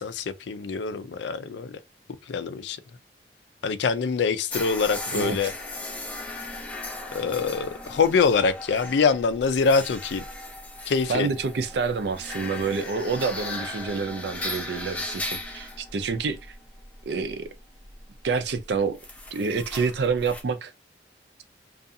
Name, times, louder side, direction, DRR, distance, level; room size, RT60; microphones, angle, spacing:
voice 1, 0.0-1.8 2.3-2.8 3.6-5.5 7.1-10.2 10.9-11.3, left 5 dB, 80° left, 0.4 m, -24 dB
sound 1, 4.5-20.4, left 2 dB, 10° left, 0.4 m, -37 dB
voice 2, 5.1-5.5 11.1-16.5 17.1-17.5 18.2-19.0 19.3-20.7, right 4 dB, 75° right, 0.4 m, -28 dB
2.4 x 2.3 x 2.6 m
head